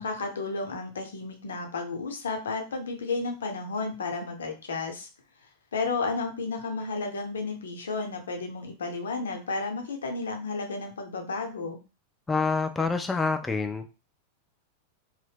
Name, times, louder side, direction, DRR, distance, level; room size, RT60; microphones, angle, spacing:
voice 1, 0.0-5.1 5.7-11.8, left 3 dB, 65° left, 3 dB, 0.7 m, -32 dB
voice 2, 12.3-13.9, left 4 dB, 10° left, 6 dB, 0.3 m, -27 dB
2.7 x 2.1 x 3.3 m, 0.31 s
figure-of-eight pair, 90°, 0 cm